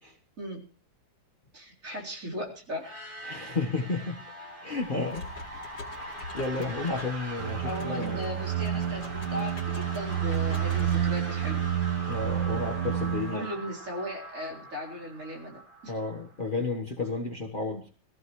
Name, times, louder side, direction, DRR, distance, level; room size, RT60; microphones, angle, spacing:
voice 1, 1.5-2.9 7.6-11.7 13.3-16.0, equal, 45° right, -2 dB, 4.4 m, -37 dB
sound 1, 2.7-16.5, right 1 dB, 25° right, 2.9 m, -42 dB
voice 2, 3.2-4.2 4.6-5.3 6.0-8.2 12.1-13.5 15.9-17.9, left 3 dB, 30° left, 1 dB, 1.4 m, -32 dB
sound 2, 4.8-11.6, left 2 dB, 75° left, 3.2 m, -46 dB
sound 3, 7.4-13.4, right 10 dB, 65° right, 1.7 m, -29 dB
22.0 x 15.0 x 3.2 m, 0.39 s
omnidirectional pair, 2.0 m